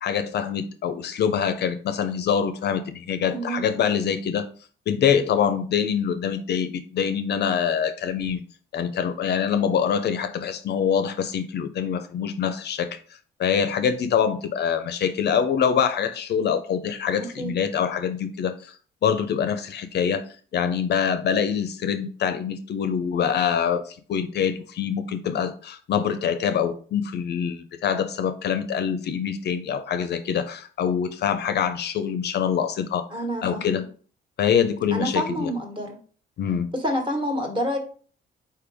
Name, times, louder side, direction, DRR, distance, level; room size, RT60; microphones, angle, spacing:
voice 1, 0.0-4.5 4.9-8.4 8.7-13.0 13.4-18.8 19.0-20.3 20.5-33.1 33.4-33.8 34.4-35.5 36.4-36.7, left 7 dB, 60° left, 0.5 m, -25 dB
voice 2, 3.3-3.6 17.4-17.5 33.1-33.8 34.9-35.9 36.7-37.8, equal, 25° right, 1.3 m, -27 dB
4.4 x 3.4 x 3.4 m
cardioid pair, 90°, 20 cm